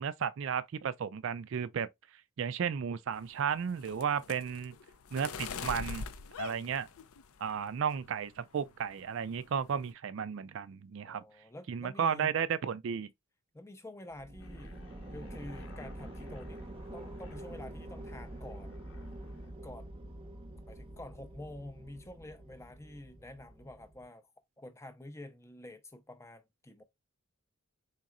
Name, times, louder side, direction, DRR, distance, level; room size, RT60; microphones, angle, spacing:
voice 1, 0.0-1.9 2.4-4.7 5.1-6.1 6.4-6.9 7.4-11.2 11.7-13.1, right 7 dB, 60° right, 0.3 m, -33 dB
sound 1, 3.2-7.6 8.0-8.4 8.7-9.0 9.3-9.9, left 5 dB, 75° left, 0.5 m, -43 dB
voice 2, 11.0-12.4 13.5-14.8 15.1-16.6 16.9-18.8 19.6-20.0 20.6-24.3 24.6-26.8, left 1 dB, 10° left, 0.5 m, -48 dB
sound 2, 14.1-24.1, right 1 dB, 25° right, 0.7 m, -46 dB
Aircraft, 14.4-19.5, left 3 dB, 60° left, 0.9 m, -58 dB
4.1 x 3.6 x 2.4 m
head